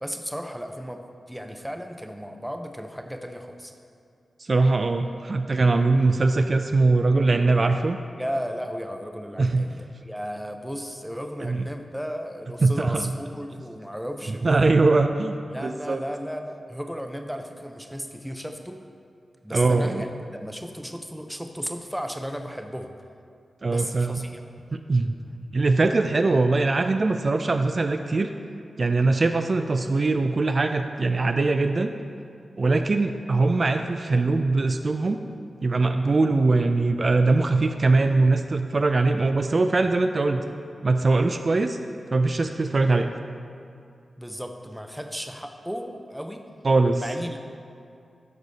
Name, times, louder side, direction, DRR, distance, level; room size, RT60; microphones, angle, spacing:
voice 1, 0.0-3.7 8.1-14.9 15.5-18.8 19.4-20.1 20.4-22.9 23.7-24.4 44.2-46.4 47.0-47.4, equal, 5° right, 5 dB, 0.6 m, -35 dB
voice 2, 4.4-8.0 9.4-9.7 11.4-11.6 12.6-13.1 14.4-16.0 19.5-20.0 23.6-24.3 24.7-25.1 25.5-28.3 28.8-31.9 32.6-35.2 35.6-40.4 40.8-41.8 42.1-43.1 46.6-47.0, right 3 dB, 45° right, 7 dB, 0.3 m, -21 dB
12.0 x 4.9 x 4.0 m, 2.4 s
wide cardioid pair, 80°, 0 cm